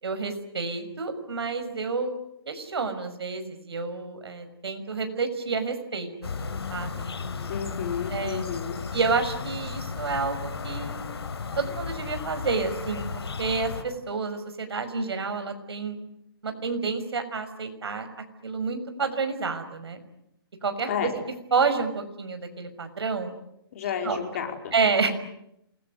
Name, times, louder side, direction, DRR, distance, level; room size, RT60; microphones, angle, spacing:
voice 1, 0.0-2.1 2.5-6.1 6.4-7.1 8.1-8.4 8.9-11.0 11.6-16.0 16.4-18.1 18.4-20.0 20.6-21.2 21.5-23.3 24.0-24.2 24.7-25.2, right 4 dB, 80° right, 8 dB, 6.1 m, -29 dB
sound 1, 6.2-13.8, left 5 dB, 80° left, 4.1 m, -34 dB
voice 2, 7.5-8.8 20.9-21.1 23.7-24.7, left 8 dB, 35° left, 4 dB, 4.7 m, -31 dB
28.0 x 21.5 x 9.5 m, 0.79 s
hypercardioid pair, 170°, 13 cm